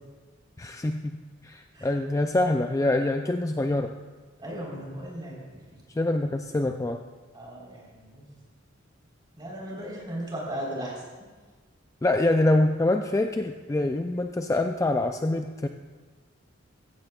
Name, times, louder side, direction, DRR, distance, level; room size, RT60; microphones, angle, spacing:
voice 1, 0.6-1.1 1.4-3.9 5.9-7.0 12.0-15.7, left 2 dB, 15° left, 5 dB, 0.4 m, -25 dB
voice 2, 4.4-5.8 7.3-8.3 9.4-11.3, right 1 dB, 25° right, -4 dB, 3.8 m, -37 dB
15.5 x 15.0 x 2.4 m, 1.4 s
head